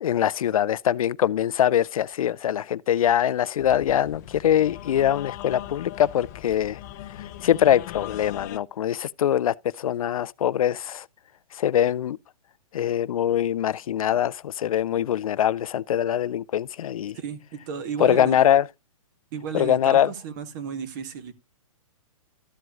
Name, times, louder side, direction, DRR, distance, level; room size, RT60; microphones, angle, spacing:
voice 1, 0.0-6.8 7.4-11.1 11.5-12.2 12.7-17.2 18.0-18.6 19.5-20.1, left 10 dB, 80° left, 0.4 m, -23 dB
sound 1, 3.6-8.6, left 13 dB, 30° left, 0.5 m, -39 dB
voice 2, 17.1-18.4 19.3-21.3, right 7 dB, 35° right, 1.3 m, -33 dB
13.5 x 7.8 x 2.4 m
hypercardioid pair, 160°, 18 cm